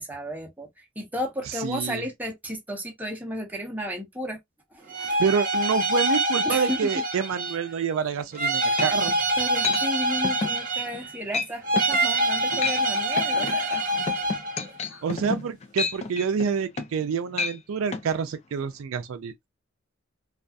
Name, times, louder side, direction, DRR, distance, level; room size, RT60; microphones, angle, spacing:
voice 1, 0.0-4.4 4.7-5.2 6.4-6.8 9.4-14.3 14.6-15.0, equal, 10° right, 0.7 m, -34 dB
voice 2, 1.5-2.1 5.2-9.1 15.0-19.3, right 6 dB, 80° right, 0.4 m, -27 dB
sound 1, 4.9-7.7 8.3-11.2 11.6-14.6, right 1 dB, 45° right, 0.8 m, -25 dB
sound 2, 8.3-8.4 8.8-9.2 9.6-9.8 10.2-10.6 10.9-11.1 11.3-11.5 11.8-12.0 12.4-12.8 13.2-17.1 17.3-17.6 17.9-18.1, left 4 dB, 30° left, 0.4 m, -30 dB
2.3 x 2.2 x 2.5 m
head